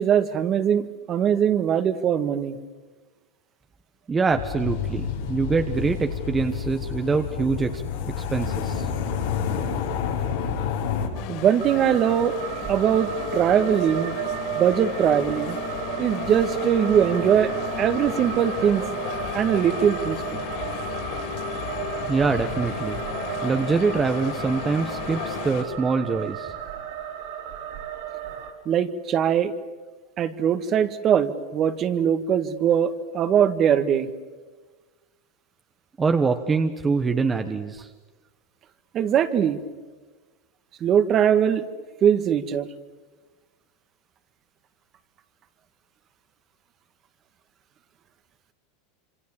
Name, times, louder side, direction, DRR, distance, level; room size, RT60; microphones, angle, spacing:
voice 1, 0.0-2.6 11.3-12.4 12.7-14.2 14.6-15.6 16.0-17.5 17.8-18.8 19.3-20.4 28.7-29.5 30.2-34.1 38.9-39.6 40.8-41.7 42.0-42.7, right 9 dB, 35° right, 10 dB, 1.8 m, -21 dB
voice 2, 4.1-7.8 8.2-8.9 22.1-23.0 23.4-26.5 36.0-37.9, right 4 dB, 20° right, 6 dB, 1.4 m, -24 dB
sound 1, 4.3-11.1, left 7 dB, 80° left, 6.3 m, -29 dB
sound 2, 11.1-25.6, left 8 dB, 60° left, 6.4 m, -34 dB
sound 3, 11.6-28.5, right 9 dB, 75° right, 5.3 m, -34 dB
27.0 x 26.0 x 7.2 m, 1.3 s
supercardioid pair, 120°, 0 cm